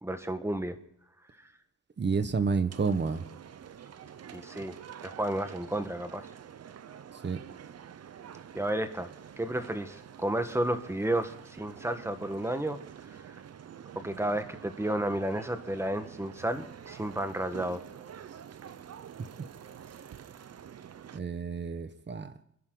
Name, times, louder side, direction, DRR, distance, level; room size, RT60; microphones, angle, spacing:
voice 1, 0.0-0.8 1.4-1.5 4.3-4.8 5.0-6.3 8.5-9.1 9.4-12.8 13.1-13.4 13.9-17.8, right 1 dB, 10° right, 8 dB, 1.4 m, -32 dB
voice 2, 2.0-3.2 7.2-7.4 21.1-22.3, right 5 dB, 35° right, 11 dB, 1.3 m, -30 dB
sound 1, 2.7-21.2, right 8 dB, 55° right, 0.8 m, -47 dB
29.5 x 11.0 x 4.0 m, 0.77 s
cardioid pair, 110°, 30 cm